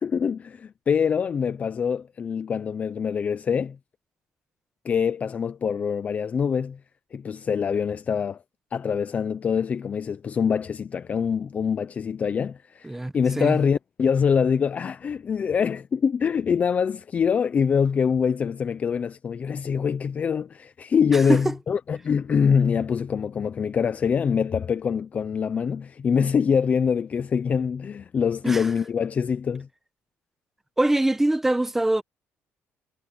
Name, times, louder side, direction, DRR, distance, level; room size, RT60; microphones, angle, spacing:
voice 1, 0.0-3.8 4.8-6.8 7.1-8.4 8.7-29.7, left 6 dB, 30° left, 0.5 m, -24 dB
voice 2, 12.8-13.6 21.1-21.4 28.4-28.7 30.8-32.0, right 1 dB, 5° right, 1.1 m, -23 dB
cardioid pair, 175°, 5 cm